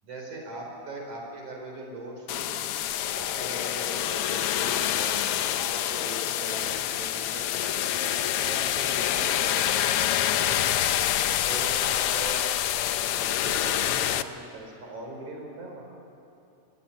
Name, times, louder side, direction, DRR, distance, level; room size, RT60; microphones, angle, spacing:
voice 1, 0.0-2.6 3.1-5.3 5.6-9.7 10.5-10.7 11.5-12.5 13.1-15.8, right 2 dB, 80° right, 1 dB, 5.6 m, -40 dB
sound 1, 2.3-14.2, left 11 dB, 75° left, 1.3 m, -26 dB
25.0 x 17.0 x 9.9 m, 2.7 s
omnidirectional pair, 3.4 m